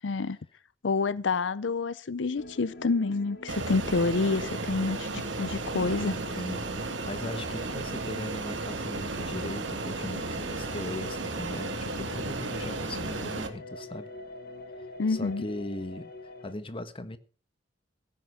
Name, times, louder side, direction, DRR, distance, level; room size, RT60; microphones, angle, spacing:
voice 1, 0.0-0.4 0.8-6.1 15.0-15.4, left 4 dB, 90° left, 0.6 m, -28 dB
sound 1, 2.4-16.5, left 3 dB, 55° left, 1.7 m, -46 dB
Fixed-wing aircraft airplane, 3.5-13.5, right 3 dB, 85° right, 2.5 m, -34 dB
voice 2, 5.8-14.1 15.1-17.2, left 1 dB, 30° left, 1.3 m, -39 dB
16.0 x 9.9 x 6.4 m
head